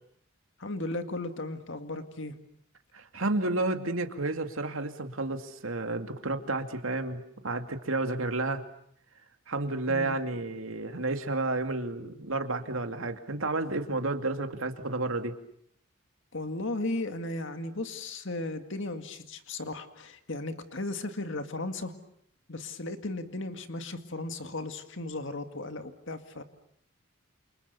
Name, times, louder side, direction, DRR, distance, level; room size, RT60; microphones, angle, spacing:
voice 1, 0.6-2.4 9.9-10.2 16.3-21.9 22.5-26.4, left 2 dB, 65° left, 7 dB, 2.1 m, -36 dB
voice 2, 2.9-8.6 9.5-15.3, right 2 dB, 75° right, 6 dB, 2.5 m, -31 dB
29.0 x 29.0 x 6.9 m, 0.67 s
head